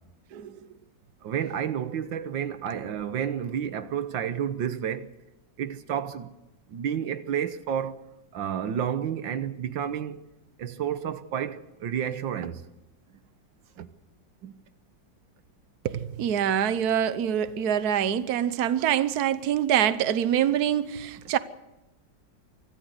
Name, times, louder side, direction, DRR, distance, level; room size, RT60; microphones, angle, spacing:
voice 1, 1.2-5.1 5.6-6.3 6.7-8.0 8.3-10.2 10.6-12.6 13.8-13.9 14.4-14.5, right 9 dB, 90° right, 1.8 m, -30 dB
voice 2, 15.8-21.4, right 10 dB, 60° right, 1.4 m, -25 dB
25.0 x 14.5 x 8.0 m
omnidirectional pair, 2.0 m